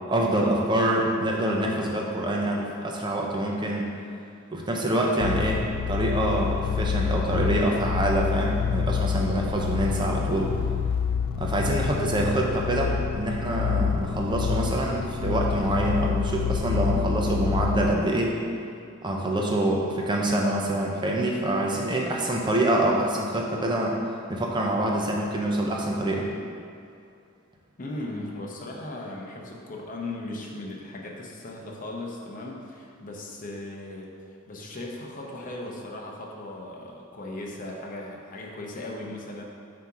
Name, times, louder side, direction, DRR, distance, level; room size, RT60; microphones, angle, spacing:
voice 1, 0.1-3.9 4.5-10.5 11.4-18.4 19.0-24.0 24.3-26.3, right 1 dB, 20° right, -1 dB, 0.7 m, -25 dB
sound 1, 5.2-17.9, left 7 dB, 70° left, 0.3 m, -28 dB
voice 2, 27.8-34.1 34.5-39.4, left 2 dB, 40° left, -1 dB, 0.8 m, -37 dB
7.5 x 2.9 x 4.8 m, 2.4 s
head